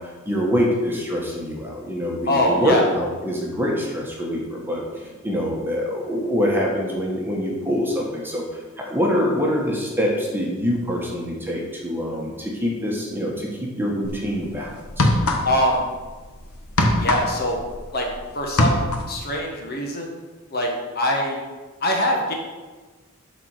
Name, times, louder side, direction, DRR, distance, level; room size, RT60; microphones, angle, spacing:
voice 1, 0.0-15.1, equal, 10° right, -2 dB, 1.3 m, -25 dB
voice 2, 2.3-2.8 15.4-15.8 17.0-17.6 17.9-18.1 18.3-20.2 20.5-20.7 20.9-21.4 21.8-22.3, left 1 dB, 45° left, 0 dB, 1.4 m, -23 dB
sound 1, 14.0-14.2 14.8-15.8 16.0-18.2 18.4-19.2, left 1 dB, 85° left, 1.1 m, -21 dB
12.0 x 4.3 x 4.8 m, 1.3 s
head